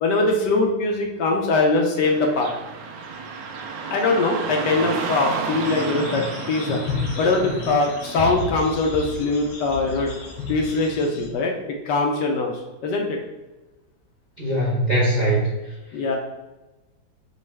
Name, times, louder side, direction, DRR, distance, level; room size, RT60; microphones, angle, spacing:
voice 1, 0.0-2.5 3.9-6.8 7.2-10.1 10.5-13.2 15.9-16.2, left 3 dB, 75° left, 1 dB, 1.1 m, -22 dB
Car passing by / Traffic noise roadway noise, 2.0-11.0, right 4 dB, 75° right, 1.2 m, -33 dB
sound 1, 5.6-11.3, left 4 dB, 90° left, 1.4 m, -32 dB
voice 2, 14.4-15.5, right 1 dB, 30° right, -7 dB, 0.8 m, -21 dB
5.3 x 2.3 x 3.2 m, 1.1 s
omnidirectional pair, 2.1 m